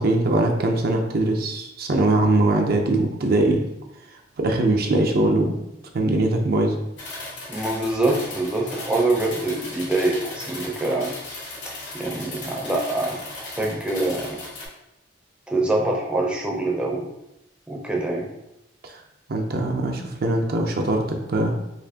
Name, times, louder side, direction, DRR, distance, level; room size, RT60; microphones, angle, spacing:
voice 1, 0.0-3.6 4.4-5.6 5.9-6.8 18.8-18.9 19.3-21.5, right 2 dB, 55° right, 2 dB, 0.5 m, -21 dB
sound 1, 7.0-14.7, left 2 dB, 80° left, 1.3 m, -37 dB
voice 2, 7.5-11.1 11.9-14.4 15.5-17.1 17.7-18.3, right 2 dB, 5° right, -2 dB, 0.5 m, -25 dB
4.2 x 2.7 x 2.7 m, 0.88 s
head